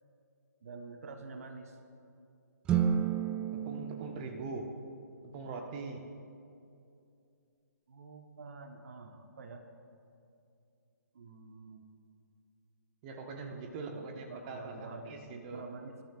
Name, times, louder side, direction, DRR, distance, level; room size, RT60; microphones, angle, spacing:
voice 1, 0.6-1.8 7.9-9.6 11.1-11.9 13.9-16.0, right 3 dB, 50° right, 5 dB, 1.1 m, -48 dB
sound 1, 2.6-5.1, right 8 dB, 10° right, 0.4 m, -32 dB
voice 2, 3.5-4.7 5.3-6.0 13.0-15.6, right 3 dB, 25° right, 3 dB, 1.2 m, -42 dB
25.0 x 13.0 x 2.4 m, 2.5 s
figure-of-eight pair, 135°, 10 cm